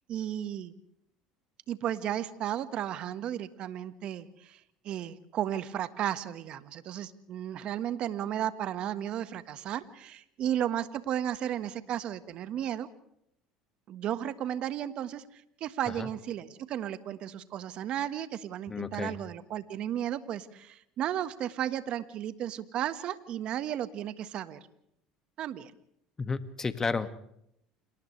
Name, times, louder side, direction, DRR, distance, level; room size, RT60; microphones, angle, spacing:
voice 1, 0.1-0.7 1.7-12.9 13.9-24.6 25.4-25.7, right 11 dB, 55° right, 12 dB, 1.5 m, -34 dB
voice 2, 18.7-19.2 26.2-27.1, left 4 dB, 25° left, 10 dB, 1.9 m, -32 dB
30.0 x 27.0 x 3.3 m, 0.76 s
hypercardioid pair, 75°, 2 cm